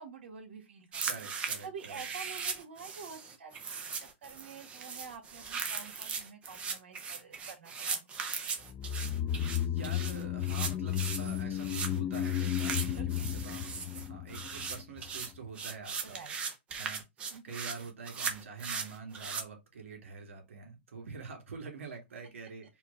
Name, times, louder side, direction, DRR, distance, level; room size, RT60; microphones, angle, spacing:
voice 1, 0.0-1.0 1.4-8.1 12.9-13.4 16.0-16.3 17.3-17.6, right 6 dB, 70° right, 1.8 m, -48 dB
sound 1, 0.9-19.4, right 5 dB, 20° right, 0.8 m, -38 dB
voice 2, 1.0-2.0 9.6-12.8 13.0-13.6 13.9-16.2 16.7-17.0 17.4-22.8, right 5 dB, 90° right, 2.2 m, -46 dB
sound 2, 8.7-15.1 15.3-15.4, left 11 dB, 25° left, 0.4 m, -34 dB
4.4 x 2.4 x 3.9 m
hypercardioid pair, 145°, 7 cm